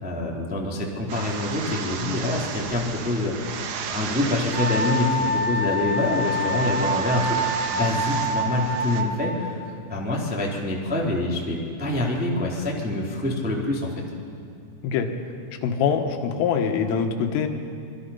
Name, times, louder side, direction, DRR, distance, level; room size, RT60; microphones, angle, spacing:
voice 1, 0.0-7.4 7.7-9.6 9.9-14.0, left 2 dB, 5° right, -3 dB, 1.5 m, -26 dB
sound 1, 1.1-9.0, right 6 dB, 65° right, 2.4 m, -34 dB
Wind instrument woodwind instrument, 4.5-9.5, equal, 15° left, 7.3 m, -26 dB
voice 2, 15.6-17.5, left 7 dB, 85° left, 5 dB, 4.0 m, -23 dB
26.0 x 22.5 x 5.7 m, 2.5 s
omnidirectional pair, 5.7 m